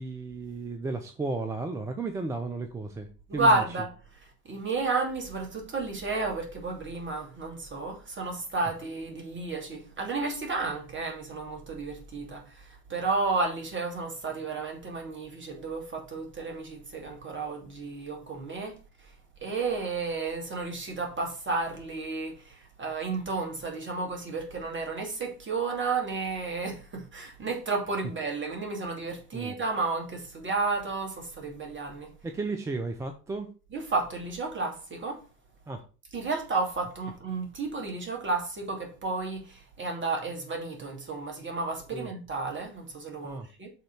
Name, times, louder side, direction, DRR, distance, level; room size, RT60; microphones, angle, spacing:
voice 1, 0.0-3.6 29.3-29.6 32.2-33.5 35.7-35.8 41.9-42.1 43.2-43.5, right 3 dB, 5° right, 0.3 m, -34 dB
voice 2, 3.3-3.9 4.4-19.1 19.4-32.1 33.7-35.2 36.1-43.7, right 3 dB, 25° right, 2.5 m, -32 dB
6.5 x 3.8 x 5.6 m
hypercardioid pair, 90°, 49 cm